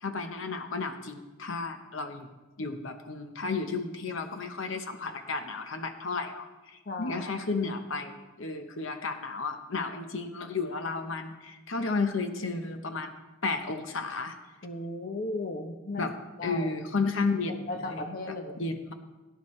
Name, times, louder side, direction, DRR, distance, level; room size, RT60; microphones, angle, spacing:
voice 1, 0.0-2.3 2.6-13.1 13.4-14.3 16.0-16.1 16.4-17.7 18.3-18.9, left 3 dB, 65° left, 6 dB, 1.0 m, -33 dB
voice 2, 6.9-7.3 14.6-16.1 16.4-16.8 17.7-18.6, left 2 dB, 45° left, 4 dB, 0.9 m, -35 dB
17.5 x 10.5 x 3.2 m, 1.1 s
head